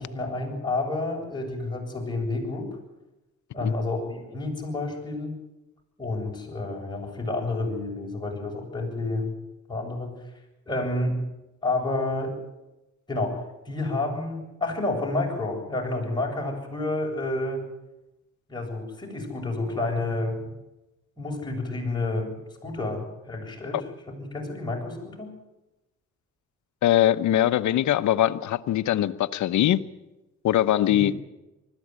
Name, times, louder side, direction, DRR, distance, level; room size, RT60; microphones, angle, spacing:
voice 1, 0.0-2.7 3.5-5.3 6.0-9.3 9.7-10.1 10.7-11.1 11.6-12.3 13.1-13.4 13.6-17.6 18.5-20.5 21.2-22.3 22.6-25.3 30.9-31.1, left 2 dB, 15° left, 0 dB, 7.7 m, -29 dB
voice 2, 26.8-29.8 30.4-31.1, left 12 dB, 70° left, 12 dB, 1.0 m, -22 dB
20.0 x 15.0 x 9.8 m, 0.99 s
cardioid pair, 90°, 30 cm